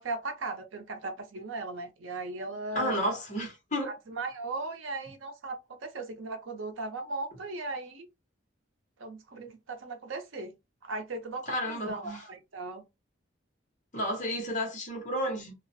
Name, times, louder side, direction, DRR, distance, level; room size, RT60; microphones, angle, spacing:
voice 1, 0.0-3.0 3.8-8.1 9.0-10.5 10.8-12.8, right 2 dB, 80° right, 0.6 m, -37 dB
voice 2, 2.7-3.9 11.5-12.2 13.9-15.5, equal, 40° left, 0.9 m, -32 dB
2.4 x 2.0 x 2.6 m
head